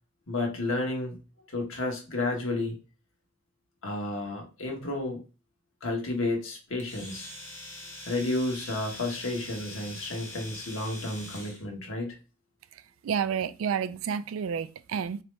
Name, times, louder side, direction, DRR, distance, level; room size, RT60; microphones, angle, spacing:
voice 1, 0.3-1.1 1.5-2.7 3.8-5.2 5.8-7.3 8.1-12.1, left 2 dB, 65° left, 1.3 m, -31 dB
Domestic sounds home sounds, 6.8-11.6, left 1 dB, 10° left, 0.9 m, -43 dB
voice 2, 13.0-15.2, right 7 dB, 65° right, 0.3 m, -30 dB
4.1 x 2.9 x 3.3 m
head